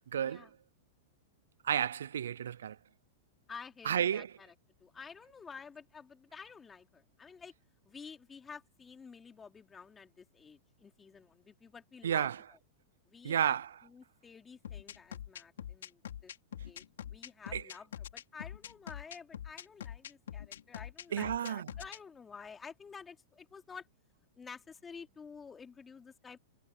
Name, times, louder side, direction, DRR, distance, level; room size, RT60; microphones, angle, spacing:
voice 1, 0.1-0.5 1.6-2.8 3.8-4.3 12.0-12.4 13.2-13.7 17.5-17.6 21.1-21.7, right 9 dB, 85° right, 0.4 m, -31 dB
voice 2, 3.5-4.5 4.8-7.5 7.8-12.3 13.1-13.6 13.8-16.3 16.6-16.8 17.1-23.9 24.4-26.4, left 5 dB, 15° left, 3.2 m, -51 dB
sound 1, 14.6-22.0, left 10 dB, 85° left, 5.9 m, -44 dB
hypercardioid pair, 125°, 0 cm